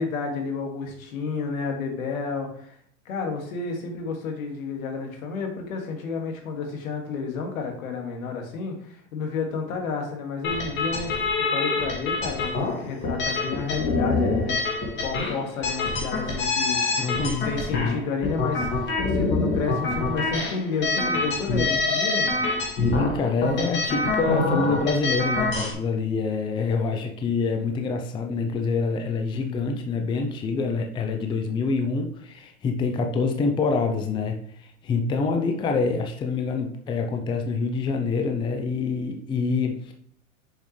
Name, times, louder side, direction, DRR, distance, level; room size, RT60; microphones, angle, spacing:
voice 1, 0.0-2.8 3.1-11.1 11.5-14.6 15.0-22.3, left 4 dB, 75° left, 3 dB, 2.2 m, -31 dB
sound 1, 10.4-25.7, left 3 dB, 25° left, 2.0 m, -26 dB
voice 2, 17.0-18.0 22.8-39.9, left 4 dB, 10° left, 4 dB, 0.5 m, -26 dB
6.8 x 6.4 x 3.2 m, 0.64 s
supercardioid pair, 130°, 41 cm